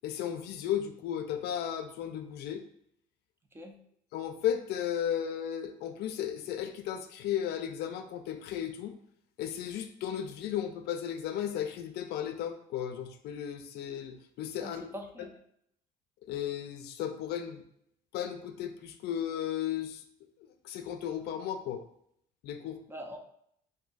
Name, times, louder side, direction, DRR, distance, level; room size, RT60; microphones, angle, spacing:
voice 1, 0.0-2.6 4.1-9.0 9.4-14.9 15.2-15.3 16.3-17.6 18.1-20.0 20.6-21.8 22.4-22.8, left 10 dB, 75° left, 7 dB, 0.4 m, -35 dB
voice 2, 14.6-15.3 22.9-23.2, equal, 15° right, 3 dB, 0.4 m, -43 dB
2.6 x 2.3 x 3.9 m, 0.70 s
cardioid pair, 110°, 17 cm